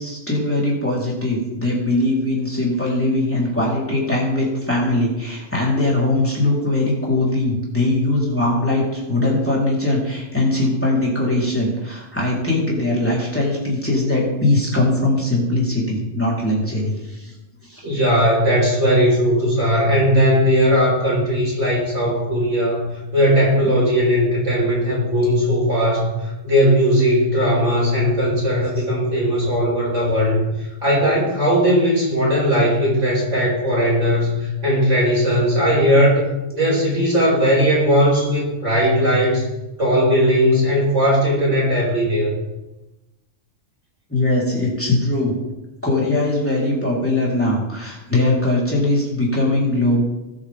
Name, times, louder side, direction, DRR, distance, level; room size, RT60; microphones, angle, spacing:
voice 1, 0.0-17.3 17.7-17.9 23.6-23.8 44.1-45.4 45.8-50.0, left 2 dB, 10° left, -5 dB, 4.3 m, -20 dB
voice 2, 17.8-36.2 36.5-39.5 39.8-42.3, equal, 70° right, -4 dB, 5.5 m, -18 dB
20.0 x 9.2 x 3.8 m, 0.99 s
omnidirectional pair, 1.3 m